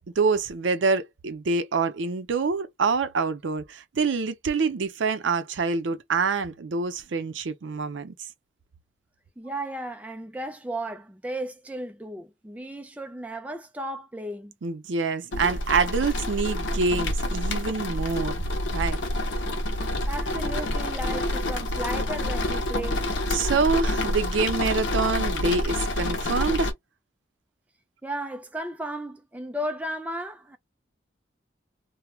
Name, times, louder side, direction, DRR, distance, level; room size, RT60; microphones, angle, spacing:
voice 1, 0.2-8.1 14.6-18.4 18.7-19.0 23.3-26.7, right 4 dB, 75° right, 0.5 m, -26 dB
voice 2, 9.4-14.5 20.1-23.2 28.0-30.6, right 1 dB, 10° right, 0.3 m, -34 dB
sound 1, 15.3-26.7, left 1 dB, 75° left, 0.6 m, -27 dB
2.2 x 2.1 x 3.0 m
head